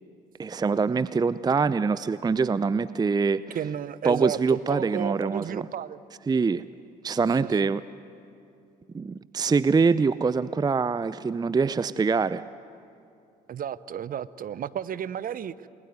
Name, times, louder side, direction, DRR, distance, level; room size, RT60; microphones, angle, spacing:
voice 1, 0.4-3.6 4.0-5.7 6.3-6.6 7.0-7.8 8.9-12.4, right 4 dB, 20° right, 16 dB, 0.6 m, -24 dB
voice 2, 3.5-6.0 7.1-7.3 7.6-7.7 13.5-15.7, right 9 dB, 45° right, 16 dB, 0.9 m, -33 dB
29.0 x 21.0 x 9.5 m, 2.6 s
figure-of-eight pair, 50°, 21 cm